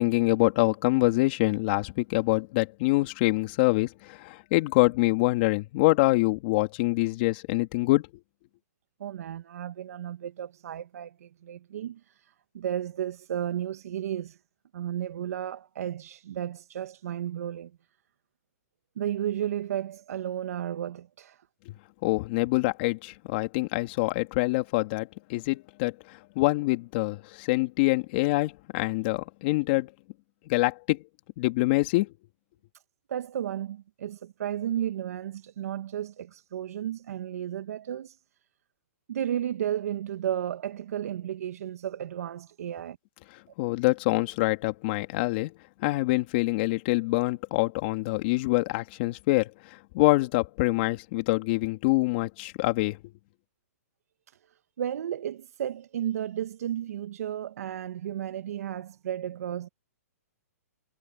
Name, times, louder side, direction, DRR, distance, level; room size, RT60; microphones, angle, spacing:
voice 1, 0.0-8.0 21.7-21.8 22.0-25.9 26.3-29.9 30.5-31.0 31.4-32.1 43.6-45.5 45.8-49.5 49.9-53.0, left 22 dB, 40° left, 2.8 m, -25 dB
voice 2, 9.0-12.0 12.5-14.4 14.7-17.7 19.0-21.4 33.1-38.2 39.1-43.0 54.8-59.7, right 10 dB, 70° right, 1.2 m, -33 dB
hypercardioid pair, 155°, 9 cm